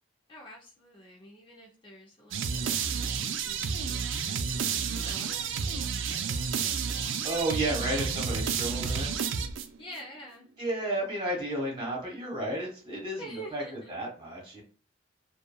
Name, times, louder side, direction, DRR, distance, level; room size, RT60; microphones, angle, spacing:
voice 1, 0.3-7.2 7.8-8.3 8.6-9.3 9.8-10.5 13.2-14.0, right 1 dB, 25° left, -1 dB, 0.5 m, -48 dB
sound 1, 2.3-10.0, right 6 dB, 85° right, 0.4 m, -31 dB
voice 2, 7.2-9.1 10.6-14.6, right 1 dB, 25° right, -2 dB, 1.4 m, -32 dB
3.0 x 2.3 x 2.3 m, 0.42 s
head